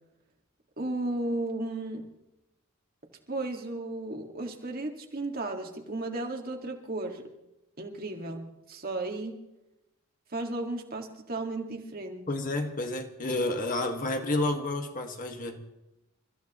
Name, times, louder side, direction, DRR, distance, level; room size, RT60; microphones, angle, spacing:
voice 1, 0.8-2.1 3.3-7.3 7.8-9.3 10.3-12.3, right 2 dB, 45° right, 2.0 m, -34 dB
voice 2, 12.3-15.6, left 2 dB, 40° left, 1.7 m, -30 dB
29.5 x 14.5 x 3.1 m
head